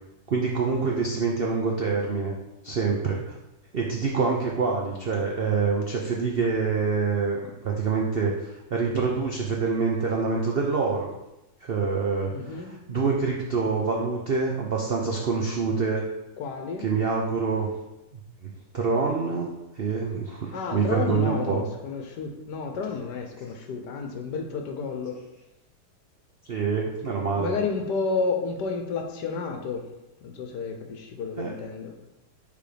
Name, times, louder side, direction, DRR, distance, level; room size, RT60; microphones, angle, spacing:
voice 1, 0.3-2.3 2.6-3.4 3.7-11.1 11.6-16.1 16.8-17.7 18.1-21.6 26.5-27.5 31.4-31.5, right 4 dB, 85° right, -1 dB, 0.5 m, -26 dB
voice 2, 12.3-12.7 16.4-16.9 20.5-25.2 27.4-29.9 30.2-31.9, left 4 dB, 70° left, 4 dB, 1.4 m, -31 dB
6.9 x 3.4 x 5.0 m, 0.94 s
omnidirectional pair, 2.0 m